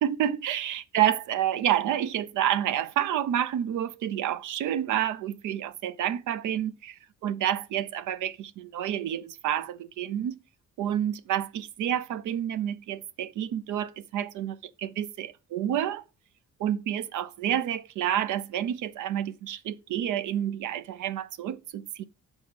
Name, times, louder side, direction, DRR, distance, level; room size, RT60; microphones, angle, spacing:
voice 1, 0.0-10.3 10.8-16.0 16.6-22.0, right 11 dB, 80° right, 0.6 m, -29 dB
6.3 x 4.3 x 5.0 m
cardioid pair, 90°, 30 cm